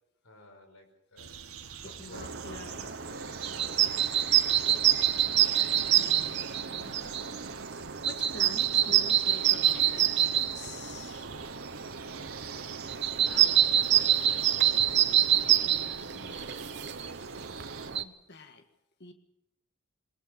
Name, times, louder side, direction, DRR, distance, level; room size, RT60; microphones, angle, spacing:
voice 1, 0.2-1.4 1.8-2.4 2.7-4.1 4.7-5.0 13.2-15.6, left 1 dB, 75° left, 4 dB, 5.4 m, -53 dB
sound 1, 1.2-17.9, right 6 dB, 75° right, 2.0 m, -46 dB
voice 2, 1.8-2.8 5.9-6.5 6.8-11.3 15.6-16.5 18.0-18.6 19.0-19.1, left 3 dB, 50° left, 6 dB, 1.8 m, -47 dB
sound 2, 2.1-18.0, right 11 dB, 50° right, 1.0 m, -27 dB
22.0 x 21.0 x 7.0 m, 0.84 s
head